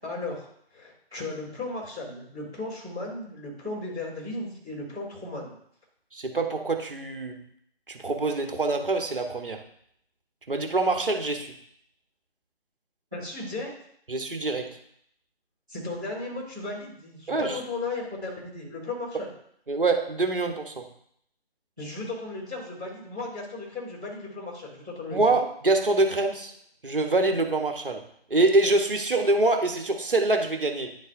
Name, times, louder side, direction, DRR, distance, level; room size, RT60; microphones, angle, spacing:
voice 1, 0.0-0.5 0.7-5.5 13.1-13.7 15.7-19.3 21.8-25.3, left 2 dB, 5° right, -15 dB, 0.8 m, -35 dB
voice 2, 6.1-7.5 7.9-9.6 10.5-11.5 14.1-14.8 17.3-17.6 19.7-20.9 25.1-26.5 26.8-28.0 28.3-31.0, right 2 dB, 60° right, 5 dB, 1.1 m, -25 dB
10.5 x 4.0 x 2.6 m, 0.67 s
figure-of-eight pair, 155°, 31 cm